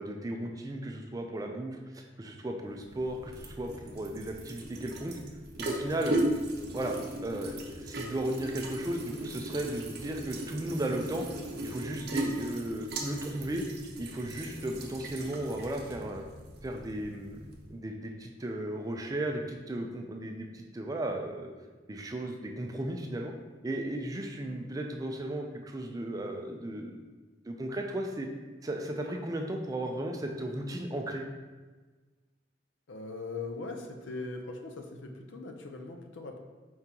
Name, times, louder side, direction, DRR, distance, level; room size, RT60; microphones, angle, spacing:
voice 1, 0.0-5.2 5.6-6.2 6.7-11.3 11.6-13.7 14.0-16.2 16.6-17.4 17.7-21.5 21.9-23.3 23.6-27.0 27.5-28.3 28.6-31.2, right 1 dB, 20° right, 2 dB, 0.3 m, -35 dB
sound 1, 2.7-17.7, right 1 dB, 55° right, 0.6 m, -38 dB
voice 2, 32.9-36.4, left 3 dB, 80° left, 3 dB, 0.5 m, -40 dB
4.6 x 3.7 x 2.8 m, 1.3 s
head